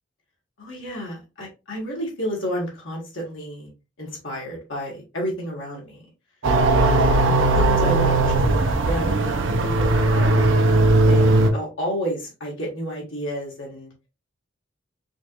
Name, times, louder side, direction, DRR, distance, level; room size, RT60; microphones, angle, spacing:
voice 1, 0.6-3.7 4.0-6.0 6.7-10.5 11.0-13.9, equal, 85° left, -2 dB, 2.1 m, -31 dB
sound 1, 6.4-11.5, right 2 dB, 75° right, 0.7 m, -18 dB
5.0 x 3.0 x 2.5 m, 0.28 s
head